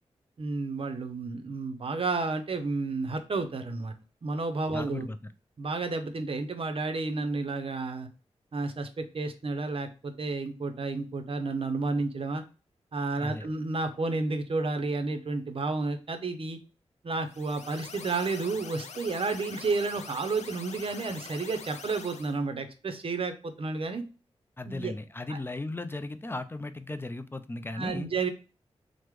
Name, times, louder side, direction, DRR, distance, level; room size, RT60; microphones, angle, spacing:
voice 1, 0.4-3.9 4.2-5.1 5.6-8.1 8.5-12.4 12.9-16.6 17.0-24.0 24.7-24.9 25.3-25.4 27.7-28.3, right 3 dB, 55° right, 7 dB, 0.6 m, -31 dB
voice 2, 4.7-5.3 13.2-13.5 24.6-28.1, left 2 dB, 20° left, 10 dB, 0.3 m, -36 dB
sound 1, 17.3-22.4, left 5 dB, 85° left, 0.4 m, -44 dB
3.4 x 2.1 x 3.0 m, 0.33 s
cardioid pair, 65°, 11 cm